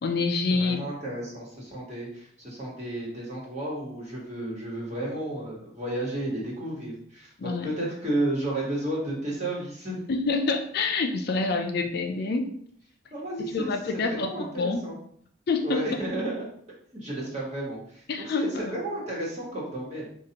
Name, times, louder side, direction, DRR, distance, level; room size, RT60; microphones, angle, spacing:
voice 1, 0.0-0.8 7.4-7.7 10.1-12.5 13.5-14.8 15.5-15.8 18.1-18.8, left 3 dB, 55° left, 5 dB, 0.4 m, -27 dB
voice 2, 0.6-10.0 11.5-11.6 13.1-15.0 15.6-16.5 16.9-20.1, right 1 dB, 35° right, -4 dB, 1.3 m, -32 dB
4.6 x 2.4 x 2.8 m, 0.64 s
head